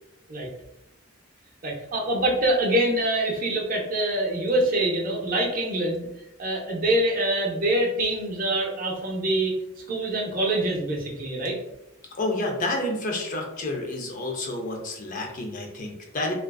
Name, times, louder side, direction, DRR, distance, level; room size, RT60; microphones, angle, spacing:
voice 1, 1.6-6.1 6.4-9.6 9.9-11.6, right 1 dB, 45° right, -1 dB, 0.5 m, -25 dB
voice 2, 12.2-16.3, left 2 dB, 40° left, 2 dB, 0.4 m, -29 dB
2.4 x 2.3 x 2.2 m, 0.87 s
head